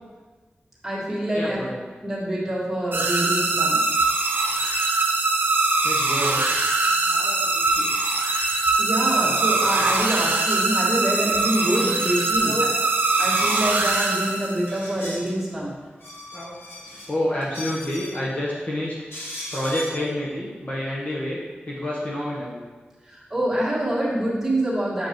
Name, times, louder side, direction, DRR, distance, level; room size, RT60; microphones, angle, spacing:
voice 1, 0.8-1.6 2.0-3.8 8.8-12.5 13.2-15.7 23.1-25.1, right 1 dB, 10° right, -8 dB, 2.1 m, -26 dB
voice 2, 1.3-1.8 5.8-6.5 7.0-7.9 12.4-12.8 16.3-18.9 19.5-21.4 21.6-22.6, left 1 dB, 40° left, -5 dB, 1.1 m, -29 dB
sound 1, 2.9-14.8, right 3 dB, 65° right, 0.7 m, -22 dB
sound 2, 13.3-13.8 14.7-15.3 15.8-17.1 17.4-18.2 19.1-20.0, equal, 90° left, 1.4 m, -36 dB
7.4 x 5.1 x 3.1 m, 1.3 s
wide cardioid pair, 105°, 4 cm